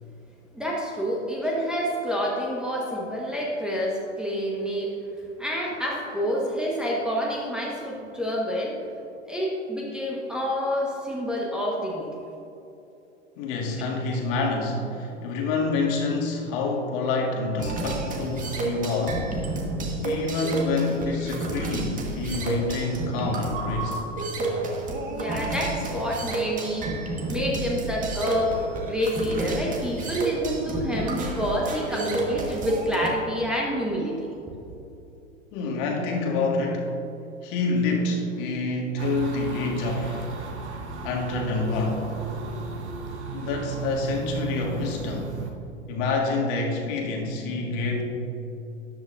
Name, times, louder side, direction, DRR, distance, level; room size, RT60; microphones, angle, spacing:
voice 1, 0.5-5.0 5.4-8.8 9.2-12.1 25.1-28.6 28.8-34.2, equal, ahead, -4 dB, 1.3 m, -28 dB
voice 2, 13.4-19.3 20.0-24.0 30.0-30.1 35.5-36.9 37.4-40.3 41.0-42.0 43.3-45.4 45.9-48.0, left 3 dB, 45° left, 0 dB, 1.9 m, -27 dB
sound 1, 17.6-33.1, right 2 dB, 20° right, 1.5 m, -30 dB
sound 2, 39.0-45.5, right 5 dB, 65° right, 1.4 m, -35 dB
13.5 x 10.5 x 2.6 m, 2.9 s
figure-of-eight pair, 95°, 37 cm